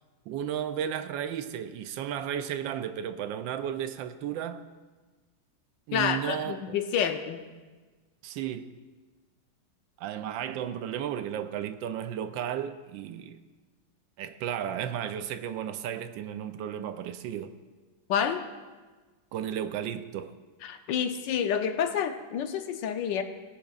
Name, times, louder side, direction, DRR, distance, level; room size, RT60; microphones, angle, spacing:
voice 1, 0.3-4.6 5.9-6.8 8.2-8.7 10.0-13.4 14.2-17.5 19.3-20.3, right 9 dB, 80° right, 1.3 m, -34 dB
voice 2, 5.9-7.4 18.1-18.4 20.6-23.2, left 8 dB, 75° left, 1.3 m, -28 dB
18.5 x 10.0 x 2.4 m
omnidirectional pair, 2.1 m